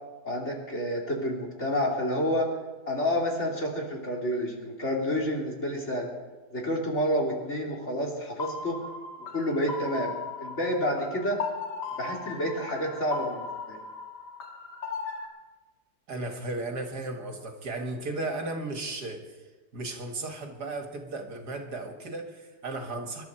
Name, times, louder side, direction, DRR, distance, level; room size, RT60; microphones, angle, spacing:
voice 1, 0.2-2.5 2.9-6.1 6.5-8.8 9.3-11.4 12.0-13.8, equal, 40° left, -2 dB, 3.3 m, -29 dB
sound 1, 8.4-15.3, left 4 dB, 70° left, 2.4 m, -37 dB
voice 2, 16.1-19.2 19.7-23.2, right 2 dB, 65° right, 4 dB, 2.3 m, -35 dB
26.0 x 12.0 x 4.4 m, 1.2 s
omnidirectional pair, 1.9 m